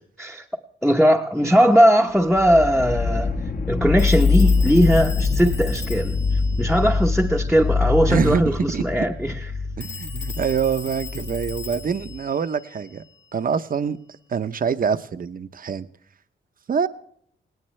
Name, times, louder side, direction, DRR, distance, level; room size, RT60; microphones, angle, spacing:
voice 1, 0.8-3.4 3.7-9.3, equal, ahead, 0.8 m, -19 dB
Telephone, 1.7-1.9 4.0-7.7 9.8-13.5, left 5 dB, 75° left, 1.7 m, -40 dB
sound 1, 2.3-12.2, left 4 dB, 45° left, 1.2 m, -24 dB
voice 2, 8.1-9.1 9.8-13.0 13.3-14.0 14.3-15.9 16.7-16.9, right 6 dB, 45° right, 0.7 m, -25 dB
19.0 x 18.5 x 3.2 m
wide cardioid pair, 150°, 20 cm